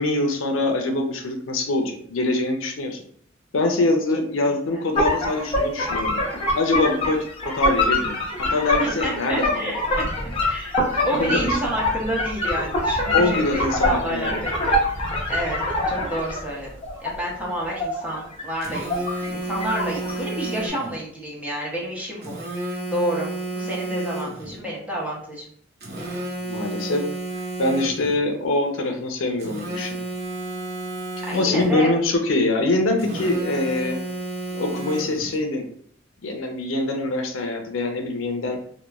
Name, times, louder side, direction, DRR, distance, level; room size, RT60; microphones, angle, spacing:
voice 1, 0.0-3.0 3.5-8.1 8.5-9.5 11.1-11.6 13.1-14.4 26.4-27.0 27.6-30.0 31.3-34.0 34.5-35.7 36.2-38.6, left 2 dB, 80° left, 3 dB, 0.5 m, -24 dB
voice 2, 4.5-4.8 8.8-10.1 10.4-14.8 15.3-15.6 15.9-16.7 17.0-18.9 19.2-23.3 23.5-25.4 31.3-31.9, right 1 dB, 10° right, -5 dB, 0.8 m, -29 dB
sound 1, 5.0-16.4 16.8-19.4 19.6-20.4, left 1 dB, 30° left, 0.6 m, -24 dB
Telephone, 18.6-21.0 22.2-24.6 25.8-28.2 29.4-31.8 33.0-35.4, right 2 dB, 55° right, 0.7 m, -31 dB
3.0 x 2.2 x 2.2 m, 0.62 s
head